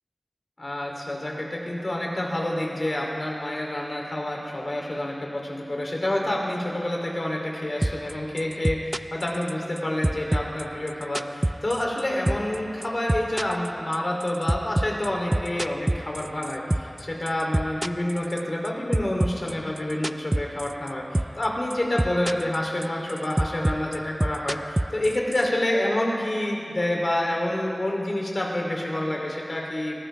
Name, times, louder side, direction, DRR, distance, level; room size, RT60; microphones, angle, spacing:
voice 1, 0.6-30.0, left 1 dB, 50° left, -2 dB, 2.9 m, -28 dB
sound 1, 7.8-8.1 8.4-9.8 10.0-12.0 12.3-12.6 12.8-17.0 17.3-18.7 18.9-20.9 21.2-21.5 21.7-22.6 22.8-25.4, right 1 dB, 25° right, 0.3 m, -25 dB
21.5 x 16.5 x 3.4 m, 2.5 s
wide cardioid pair, 70°, 0 cm